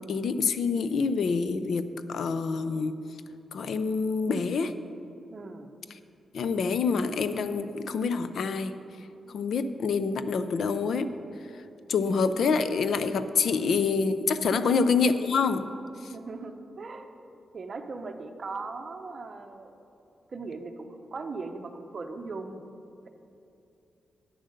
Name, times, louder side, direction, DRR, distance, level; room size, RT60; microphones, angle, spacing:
voice 1, 0.0-3.0 3.5-4.7 6.3-8.7 9.3-11.1 11.9-15.6 16.0-16.1, left 5 dB, 65° left, 11 dB, 0.5 m, -26 dB
voice 2, 5.3-5.7 14.4-14.7 16.1-17.1 17.5-19.8 20.3-22.7, right 3 dB, 35° right, 7 dB, 0.6 m, -39 dB
9.4 x 7.5 x 6.6 m, 2.7 s
wide cardioid pair, 175°, 0 cm